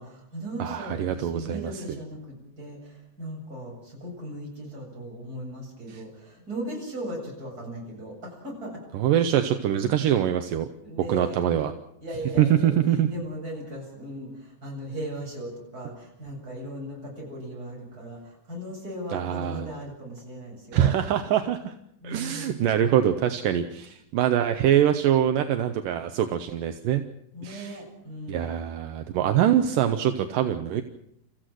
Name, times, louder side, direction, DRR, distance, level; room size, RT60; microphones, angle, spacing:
voice 1, 0.0-8.8 10.8-11.4 12.0-12.8 13.1-20.9 22.0-22.7 27.3-28.5, right 1 dB, 25° right, -1 dB, 8.4 m, -37 dB
voice 2, 0.6-1.8 5.9-6.0 8.9-10.7 11.0-11.7 12.4-13.1 19.1-19.7 20.7-21.7 22.0-27.0 27.4-27.8 28.3-30.8, right 10 dB, 75° right, 7 dB, 2.6 m, -24 dB
28.5 x 15.0 x 7.8 m, 0.72 s
omnidirectional pair, 3.9 m